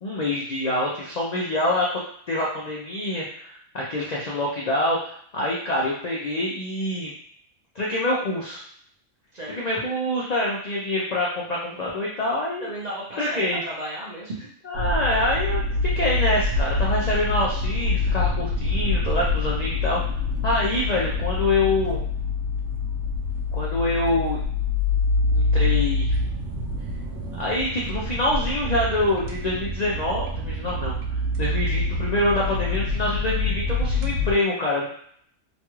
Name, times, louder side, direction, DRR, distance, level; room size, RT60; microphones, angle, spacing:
voice 1, 0.0-2.0 2.3-7.1 7.8-8.6 9.6-12.7 13.2-13.6 14.7-20.0 20.4-22.0 23.5-24.4 25.3-26.2 27.4-31.0 31.4-34.9, left 1 dB, 60° left, -4 dB, 0.4 m, -25 dB
voice 2, 12.6-14.5, right 1 dB, 40° right, -6 dB, 0.7 m, -34 dB
sound 1, 14.8-34.3, left 3 dB, 80° right, 0.9 m, -26 dB
3.0 x 2.3 x 3.0 m, 0.63 s
omnidirectional pair, 1.4 m